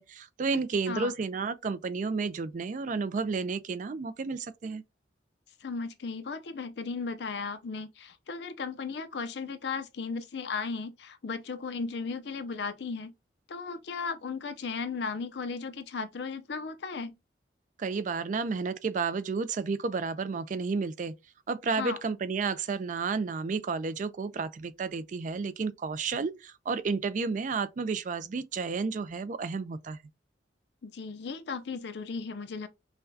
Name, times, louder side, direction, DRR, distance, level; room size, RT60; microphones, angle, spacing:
voice 1, 0.0-4.8 17.8-21.1 21.5-30.0, right 4 dB, 45° right, 0.4 m, -31 dB
voice 2, 5.6-13.1 13.5-17.1 21.8-22.0 30.8-32.7, left 4 dB, 65° left, 0.5 m, -36 dB
5.6 x 2.2 x 2.7 m
head